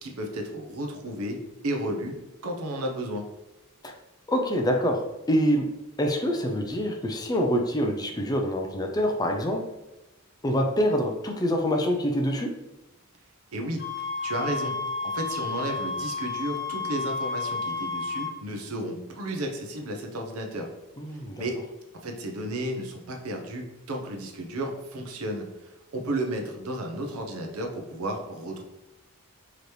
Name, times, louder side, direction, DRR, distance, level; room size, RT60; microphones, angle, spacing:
voice 1, 0.0-1.4 1.6-2.2 2.4-3.2 13.5-13.8 14.2-14.7 15.1-20.7 21.4-21.6 22.0-25.4 25.9-28.6, right 1 dB, 85° right, 3 dB, 0.8 m, -33 dB
voice 2, 4.3-5.0 5.3-5.7 6.0-9.6 10.4-12.5 21.0-21.4, equal, 20° left, 3 dB, 0.4 m, -25 dB
sound 1, 13.8-18.3, left 4 dB, 50° left, 0.8 m, -31 dB
4.9 x 3.0 x 3.1 m, 1.0 s
head